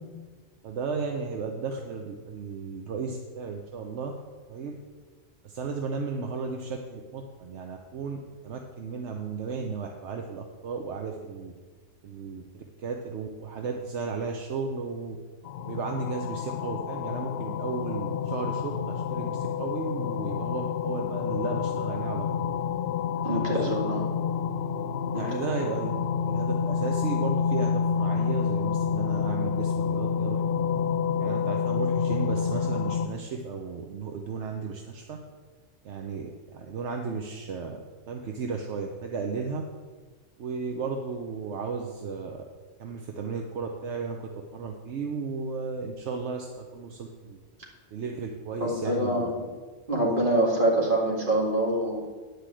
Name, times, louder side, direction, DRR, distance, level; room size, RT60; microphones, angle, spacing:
voice 1, 0.6-4.1 4.5-4.7 5.4-11.5 12.0-15.2 15.6-22.5 23.3-23.7 25.1-30.7 31.2-35.2 35.8-37.8 38.1-39.6 40.4-42.4 42.8-47.4 47.9-49.3, right 5 dB, 75° right, 3 dB, 1.1 m, -34 dB
sound 1, 15.5-33.1, left 6 dB, 65° left, 0.8 m, -28 dB
voice 2, 23.2-24.0 25.1-25.3 48.6-49.5 49.9-52.0, right 1 dB, 45° right, -3 dB, 2.3 m, -25 dB
9.9 x 5.1 x 7.6 m, 1.4 s
omnidirectional pair, 1.2 m